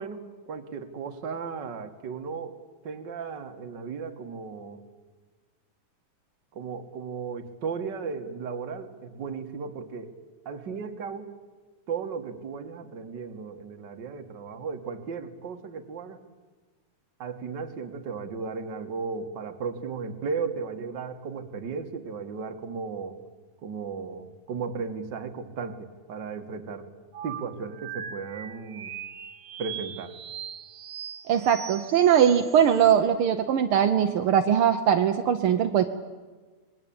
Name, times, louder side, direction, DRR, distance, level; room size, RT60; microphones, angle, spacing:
voice 1, 0.0-2.5 2.8-4.8 6.5-10.1 10.4-11.3 11.9-16.2 17.2-23.2 23.6-26.9 27.2-28.9 29.6-30.1, right 5 dB, 45° right, 6 dB, 1.8 m, -35 dB
sound 1, 27.1-33.0, right 9 dB, 85° right, 2.5 m, -40 dB
voice 2, 31.3-35.9, right 9 dB, 70° right, 6 dB, 1.3 m, -21 dB
26.0 x 20.5 x 8.7 m, 1.3 s
omnidirectional pair, 3.5 m